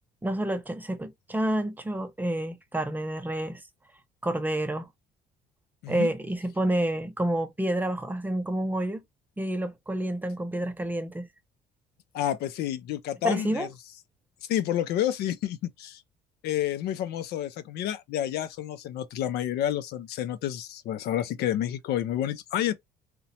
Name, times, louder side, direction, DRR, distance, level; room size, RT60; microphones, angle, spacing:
voice 1, 0.2-3.6 4.2-4.9 5.9-9.0 9.4-11.3 13.2-13.7, right 1 dB, 10° right, 0.4 m, -29 dB
voice 2, 12.1-13.7 14.5-16.0 16.4-22.7, left 11 dB, 70° left, 0.4 m, -29 dB
2.7 x 2.1 x 2.7 m
cardioid pair, 110°, 17 cm